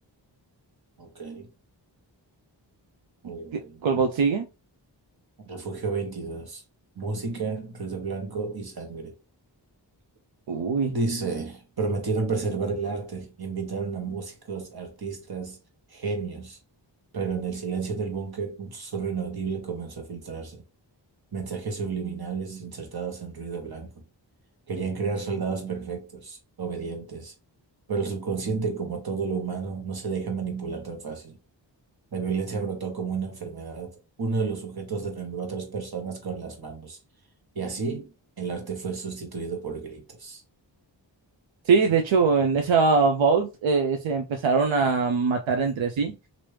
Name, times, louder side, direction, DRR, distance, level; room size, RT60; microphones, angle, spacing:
voice 1, 1.0-1.5 3.2-3.8 5.4-6.6 7.0-9.1 10.9-15.6 15.9-16.6 17.1-20.6 21.3-23.9 24.7-27.3 27.9-31.4 32.1-33.9 34.2-37.0 37.5-38.1 38.4-40.4, right 4 dB, 55° right, 1.2 m, -31 dB
voice 2, 3.5-4.5 10.5-10.9 41.7-46.2, right 4 dB, 85° right, 0.5 m, -22 dB
3.0 x 2.6 x 3.2 m
wide cardioid pair, 55°, 45 cm